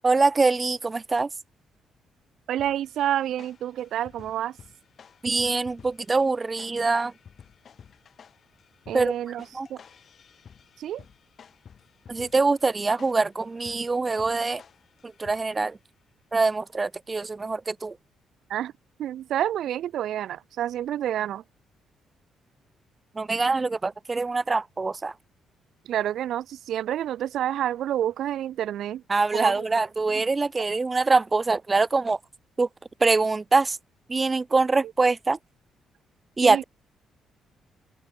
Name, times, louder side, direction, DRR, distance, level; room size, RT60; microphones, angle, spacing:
voice 1, 0.0-1.3 5.2-7.1 8.9-9.1 9.5-9.7 12.1-14.6 15.2-15.8 16.3-17.9 23.2-25.1 29.1-32.2 32.6-32.7 33.0-33.8 34.1-35.4 36.4-36.6, right 3 dB, 25° right, 0.3 m, -24 dB
voice 2, 2.5-4.6 8.9-9.8 10.8-11.0 18.5-18.7 19.0-21.4 25.9-29.0 29.3-29.7 30.1-30.2 34.8-34.9 36.4-36.6, right 11 dB, 75° right, 0.6 m, -29 dB
sound 1, 2.6-15.7, left 7 dB, 50° left, 4.5 m, -53 dB
open air
cardioid pair, 90°, 0 cm